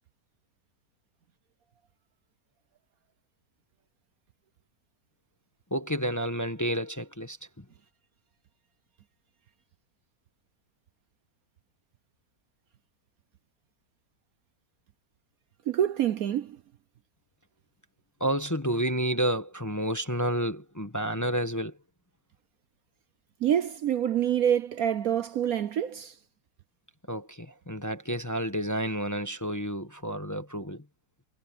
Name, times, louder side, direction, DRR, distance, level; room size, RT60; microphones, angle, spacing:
voice 1, 5.7-7.4 18.2-21.7 27.1-30.8, right 1 dB, 10° left, 1.1 m, -30 dB
voice 2, 15.7-16.6 23.4-26.2, right 10 dB, 65° right, 1.1 m, -26 dB
omnidirectional pair, 1.9 m